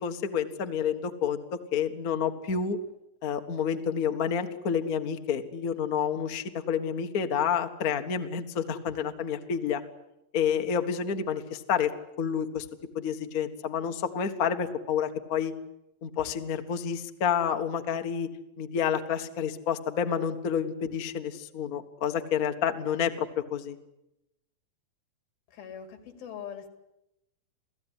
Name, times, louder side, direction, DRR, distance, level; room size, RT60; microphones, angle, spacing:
voice 1, 0.0-2.8 3.2-9.8 10.3-11.9 12.2-12.6 12.9-15.5 16.0-18.3 18.6-23.8, left 7 dB, 65° left, 6 dB, 0.8 m, -29 dB
voice 2, 25.5-26.7, left 8 dB, 85° left, 8 dB, 4.3 m, -42 dB
28.5 x 17.5 x 9.9 m, 0.89 s
omnidirectional pair, 4.1 m